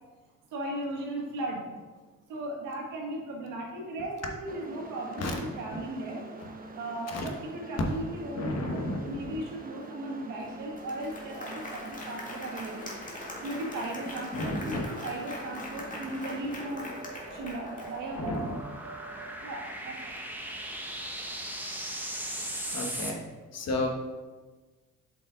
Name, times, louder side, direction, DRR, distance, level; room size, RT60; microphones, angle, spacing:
voice 1, 0.5-1.7 2.3-6.2 6.7-12.9 13.4-18.4 19.4-20.2, right 1 dB, 90° right, 0 dB, 1.7 m, -37 dB
sound 1, 4.5-19.3, right 2 dB, 30° right, 1.0 m, -46 dB
voice 2, 8.4-9.3 14.3-14.9 18.2-18.5 22.4-23.2 23.5-23.9, left 1 dB, 55° left, 2 dB, 1.4 m, -33 dB
Applause, 10.4-10.5 10.8-18.3, left 1 dB, 25° left, 1.7 m, -42 dB
sound 2, 15.6-23.1, right 1 dB, 5° right, 1.2 m, -39 dB
7.7 x 5.4 x 3.8 m, 1.3 s
cardioid pair, 90°, 30 cm